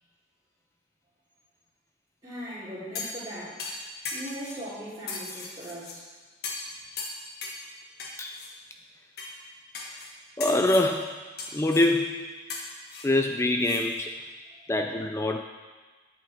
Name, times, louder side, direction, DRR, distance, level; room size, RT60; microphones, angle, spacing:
voice 1, 2.2-3.6 4.1-6.0, equal, 25° right, -13 dB, 2.9 m, -39 dB
sound 1, 2.9-3.2 3.6-4.6 5.1-6.0 6.4-6.7 7.0-7.6 8.0-8.5 9.2-9.3 9.7-10.1 10.4-10.9 11.4-11.9 12.5-13.8 14.2-14.3, left 3 dB, 55° left, 1.4 m, -37 dB
voice 2, 10.4-11.2 11.5-12.4 13.0-14.1 14.7-15.4, left 1 dB, 15° left, 5 dB, 0.3 m, -25 dB
10.5 x 8.4 x 4.3 m, 1.4 s
head